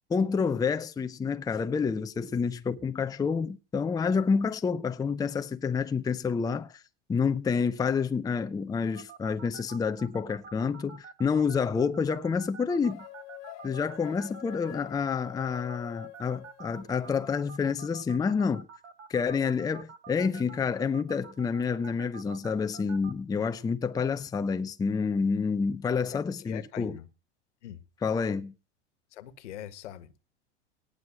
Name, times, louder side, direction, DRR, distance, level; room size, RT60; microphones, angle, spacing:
voice 1, 0.1-6.8 7.1-13.0 13.6-18.7 19.1-27.0 28.0-28.5, left 5 dB, 10° left, 0.6 m, -28 dB
sound 1, 8.9-23.1, right 6 dB, 75° right, 1.8 m, -47 dB
sound 2, 12.8-17.3, left 16 dB, 45° left, 1.0 m, -47 dB
voice 2, 26.1-27.1 27.6-27.8 29.1-30.1, left 11 dB, 70° left, 1.6 m, -43 dB
18.0 x 6.4 x 7.5 m
hypercardioid pair, 95°, 36 cm